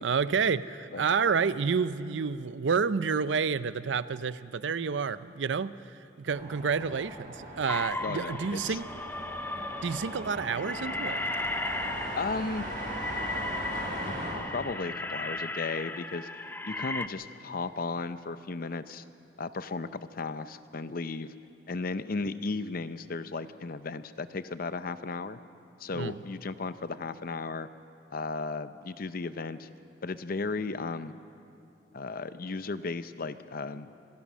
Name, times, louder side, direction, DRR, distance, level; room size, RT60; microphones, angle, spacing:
voice 1, 0.0-5.8 6.2-8.8 9.8-11.2 25.9-26.2, right 5 dB, 90° right, 15 dB, 0.5 m, -29 dB
sound 1, 6.3-14.3, right 1 dB, 50° right, 5.5 m, -39 dB
sound 2, 7.7-17.1, left 2 dB, 10° left, 0.5 m, -36 dB
voice 2, 8.0-8.8 12.2-12.7 14.1-16.3 16.6-19.0 19.4-21.3 21.7-25.4 25.8-27.7 28.1-29.7 30.0-31.1 31.9-33.9, left 3 dB, 55° left, 12 dB, 0.7 m, -35 dB
25.5 x 16.5 x 6.2 m, 2.6 s
head